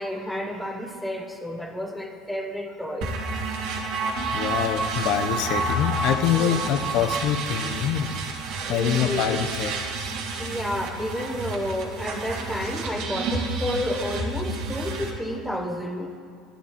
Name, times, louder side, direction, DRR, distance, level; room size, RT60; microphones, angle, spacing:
voice 1, 0.0-3.1 6.4-6.6 8.6-9.3 10.4-16.1, equal, ahead, 4 dB, 0.8 m, -31 dB
sound 1, 3.0-15.1, right 3 dB, 50° right, 1.6 m, -30 dB
voice 2, 4.3-8.1 8.7-9.7, left 9 dB, 50° left, 8 dB, 0.8 m, -25 dB
11.5 x 7.3 x 8.9 m, 2.4 s
cardioid pair, 160°, 0 cm